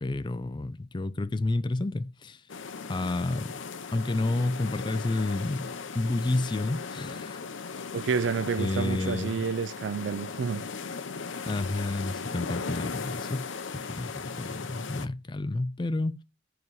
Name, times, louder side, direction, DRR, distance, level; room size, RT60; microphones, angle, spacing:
voice 1, 0.0-2.4 2.9-3.5 3.9-7.4 8.6-9.4 11.5-13.5 13.7-16.2, left 2 dB, 25° left, 0.4 m, -30 dB
sound 1, 2.5-15.1, left 5 dB, 75° left, 0.7 m, -38 dB
voice 2, 7.9-10.6, right 6 dB, 65° right, 0.4 m, -29 dB
5.5 x 4.7 x 4.7 m
head